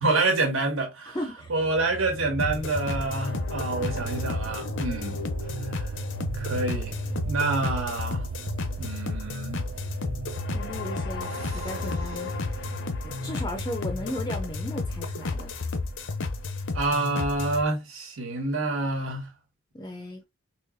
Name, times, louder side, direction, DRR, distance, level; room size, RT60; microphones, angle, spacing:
voice 1, 0.0-1.2 1.5-5.2 6.3-7.0 7.2-8.3 8.8-9.7 16.7-19.3, right 3 dB, 85° right, 1.4 m, -27 dB
voice 2, 1.1-1.5 10.5-12.7 13.0-15.5 19.7-20.2, left 1 dB, 20° left, 0.4 m, -36 dB
sound 1, 1.4-17.5, right 5 dB, 60° right, 0.3 m, -38 dB
sound 2, 2.4-17.6, left 3 dB, 70° left, 0.6 m, -32 dB
4.0 x 3.0 x 2.5 m
head